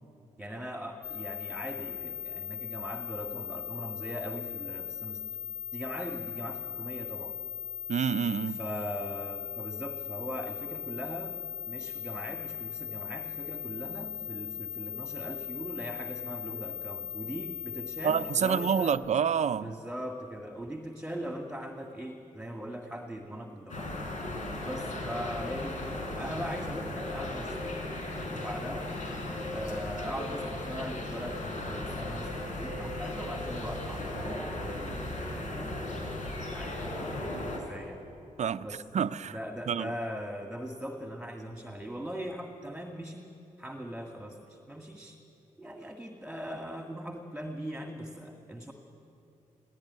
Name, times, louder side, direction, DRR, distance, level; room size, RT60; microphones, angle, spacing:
voice 1, 0.4-5.2 5.7-7.4 8.5-11.4 11.7-19.0 19.6-24.1 24.7-27.8 28.3-28.9 29.5-38.0 38.6-38.8 39.3-43.3 43.6-45.2 45.6-48.7, equal, 5° right, 3 dB, 1.8 m, -40 dB
sound 1, 1.0-18.9, left 9 dB, 85° left, 2.2 m, -39 dB
voice 2, 7.9-8.6 18.0-19.8 38.4-38.7 38.9-39.4 39.7-39.9, right 7 dB, 55° right, 14 dB, 0.6 m, -28 dB
sound 2, 23.7-37.6, left 1 dB, 65° left, 4.7 m, -36 dB
18.5 x 16.5 x 9.7 m, 2.7 s
cardioid pair, 60°, 14 cm